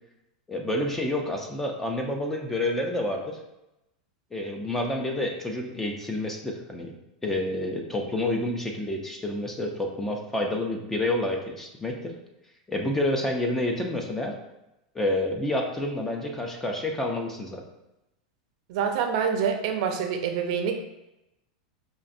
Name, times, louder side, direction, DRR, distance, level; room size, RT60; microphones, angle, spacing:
voice 1, 0.5-3.4 4.3-6.9 7.2-12.1 12.7-14.3 14.9-17.6, left 1 dB, 10° left, 2 dB, 0.4 m, -29 dB
voice 2, 18.7-20.7, right 7 dB, 55° right, 4 dB, 0.5 m, -26 dB
5.2 x 2.5 x 2.5 m, 0.92 s
supercardioid pair, 145°, 4 cm